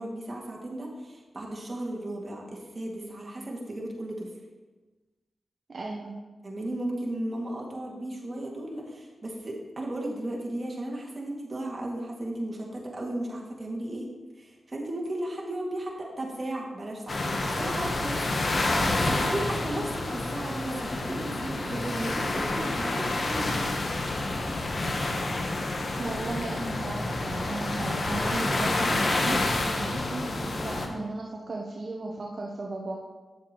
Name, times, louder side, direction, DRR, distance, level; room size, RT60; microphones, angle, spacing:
voice 1, 0.0-4.3 6.4-14.1 14.4-18.3 19.0-23.7, right 1 dB, 35° right, -2 dB, 2.1 m, -35 dB
voice 2, 5.7-6.2 26.0-33.0, right 2 dB, 55° right, -1 dB, 0.8 m, -35 dB
sound 1, 17.1-30.9, left 2 dB, 50° left, 1.0 m, -29 dB
9.4 x 7.2 x 3.0 m, 1.3 s
cardioid pair, 45°, 0 cm